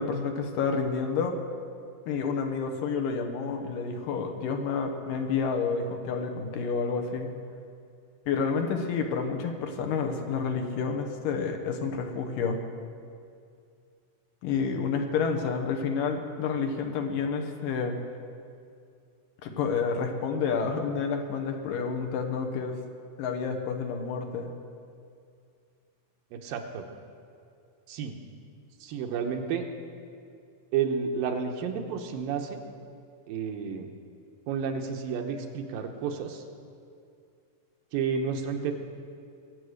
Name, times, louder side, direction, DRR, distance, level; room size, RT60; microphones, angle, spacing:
voice 1, 0.0-1.4 2.1-7.3 8.3-12.6 14.4-18.0 19.4-22.8 23.2-24.5, left 5 dB, 75° left, 4 dB, 2.7 m, -29 dB
voice 2, 26.3-26.9 27.9-28.2 28.8-29.6 30.7-32.6 33.3-33.9 34.5-36.4 37.9-38.7, right 6 dB, 80° right, 4 dB, 2.7 m, -31 dB
22.0 x 8.3 x 6.5 m, 2.4 s
omnidirectional pair, 4.1 m